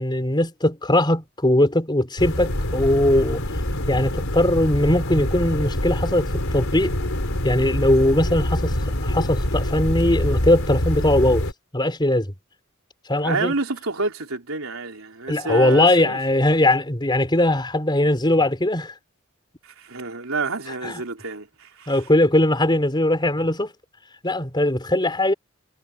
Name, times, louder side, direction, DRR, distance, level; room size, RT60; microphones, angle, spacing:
voice 1, 0.0-3.4 3.9-6.9 7.4-8.8 9.0-11.4 11.7-12.3 13.1-13.5 15.3-18.9 20.8-21.0 21.9-23.7 24.2-25.3, left 1 dB, 20° left, 3.9 m, -20 dB
sound 1, 2.2-11.5, left 1 dB, 80° left, 3.6 m, -25 dB
voice 2, 13.2-16.2 19.6-22.0, right 3 dB, 90° right, 3.6 m, -29 dB
head